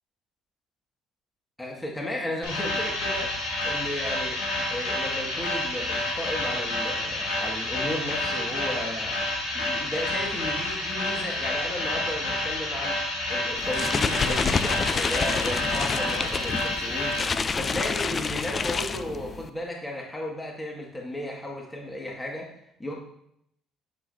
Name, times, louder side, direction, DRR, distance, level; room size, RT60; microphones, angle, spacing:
voice 1, 1.6-4.4 4.7-9.2 9.5-13.0 13.3-17.2 17.6-22.5 22.8-22.9, left 1 dB, 15° left, -2 dB, 2.0 m, -34 dB
sound 1, 2.4-17.2, left 2 dB, 80° left, 2.2 m, -29 dB
sound 2, 13.6-19.5, left 5 dB, 40° left, 0.5 m, -28 dB
9.0 x 6.4 x 2.8 m, 0.72 s
hypercardioid pair, 60°, 0 cm